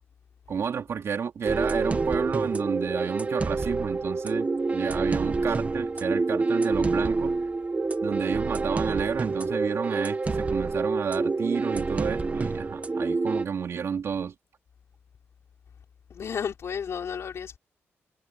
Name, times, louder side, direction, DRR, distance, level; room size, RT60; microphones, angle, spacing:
voice 1, 0.5-7.4 8.0-14.3, right 7 dB, 65° right, 3.5 m, -31 dB
sound 1, 1.4-13.4, right 3 dB, 30° right, 1.1 m, -27 dB
voice 2, 16.1-17.6, left 7 dB, 65° left, 5.1 m, -32 dB
wide cardioid pair, 110°, 5 cm